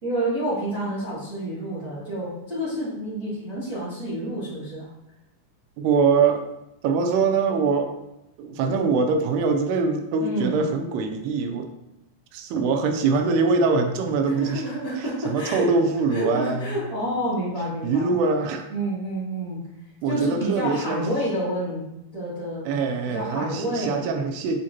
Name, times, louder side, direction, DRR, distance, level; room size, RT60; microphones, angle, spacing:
voice 1, 0.0-4.9 10.2-10.6 14.2-15.7 16.1-18.1 18.7-19.6 20.0-21.8 22.1-22.6 23.1-24.1, right 1 dB, 25° right, -12 dB, 2.1 m, -29 dB
voice 2, 5.8-6.4 6.8-8.0 8.4-11.7 12.3-14.6 15.0-16.8 17.8-18.7 20.0-21.1 22.6-24.6, right 4 dB, 80° right, 6 dB, 2.6 m, -23 dB
8.7 x 4.3 x 3.0 m, 0.86 s
omnidirectional pair, 4.7 m